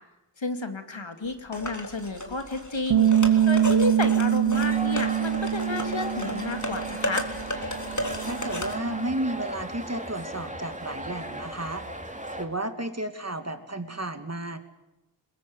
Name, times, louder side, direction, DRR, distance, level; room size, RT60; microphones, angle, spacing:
voice 1, 0.4-7.2, left 3 dB, 80° left, 7 dB, 2.6 m, -31 dB
sound 1, 1.5-8.7, left 1 dB, 40° left, 3.6 m, -34 dB
Bass guitar, 2.9-9.1, right 10 dB, 70° right, 0.8 m, -25 dB
sound 2, 4.5-12.4, right 1 dB, 15° right, 3.1 m, -37 dB
voice 2, 8.2-11.9 12.4-14.6, right 1 dB, 35° right, 8 dB, 2.6 m, -32 dB
22.0 x 21.5 x 9.7 m, 0.99 s
wide cardioid pair, 45°, 45 cm